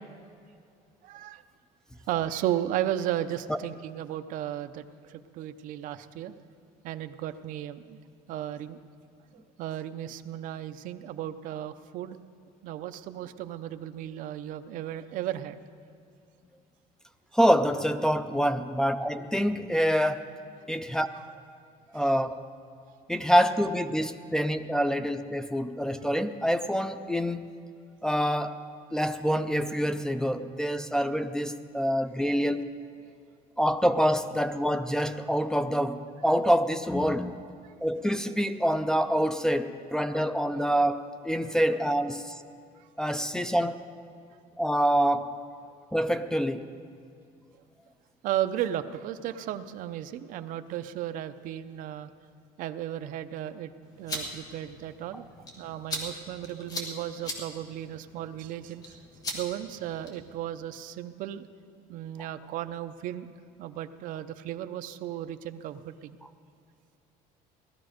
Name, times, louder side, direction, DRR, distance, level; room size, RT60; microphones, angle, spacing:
voice 1, 1.0-1.4 2.1-6.3 6.8-8.0 8.3-8.8 9.3-12.2 12.6-15.6 21.1-21.2 33.0-33.1 37.6-37.7 40.1-40.2 42.8-42.9 45.6-45.7 48.2-52.1 52.6-53.7 54.0-55.3 55.6-59.0 59.3-61.5 61.9-63.3 63.6-66.2, right 12 dB, 55° right, 9 dB, 0.6 m, -35 dB
voice 2, 17.3-20.2 20.7-21.1 21.9-22.3 23.1-27.5 28.0-28.6 28.9-32.6 33.6-42.3 43.0-43.8 44.6-45.4 45.9-46.7, equal, 5° left, 10 dB, 0.3 m, -26 dB
sound 1, 53.8-60.4, left 1 dB, 20° left, 1.7 m, -40 dB
17.5 x 13.0 x 5.1 m, 2.4 s
cardioid pair, 165°, 17 cm